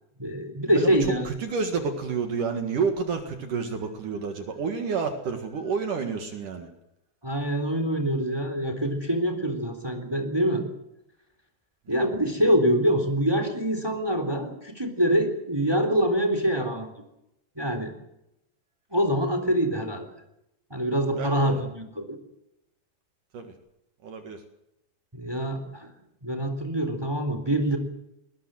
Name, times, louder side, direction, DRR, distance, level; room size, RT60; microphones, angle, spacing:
voice 1, 0.2-1.3 7.2-10.6 11.9-16.9 17.6-17.9 18.9-20.1 20.7-22.2 25.1-25.9 26.2-27.8, equal, 5° right, 6 dB, 2.9 m, -25 dB
voice 2, 0.8-6.7 21.1-21.6 23.3-23.5 24.0-24.4, right 5 dB, 55° right, 6 dB, 3.1 m, -29 dB
20.5 x 20.5 x 7.7 m, 0.84 s
omnidirectional pair, 4.7 m